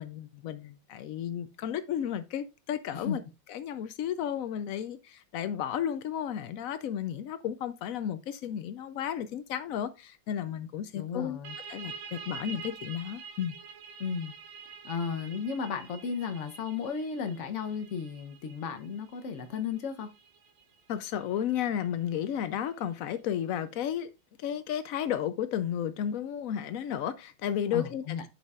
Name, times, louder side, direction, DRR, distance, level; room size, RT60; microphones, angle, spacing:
voice 1, 0.0-3.2 3.5-11.4 11.7-13.5 20.9-24.1 24.4-28.2, left 9 dB, 85° left, 0.7 m, -33 dB
voice 2, 10.9-11.6 14.0-14.3 14.8-20.1 27.7-28.2, left 6 dB, 55° left, 0.8 m, -34 dB
sound 1, 11.4-22.8, right 6 dB, 85° right, 1.5 m, -47 dB
11.5 x 5.0 x 2.4 m
omnidirectional pair, 2.1 m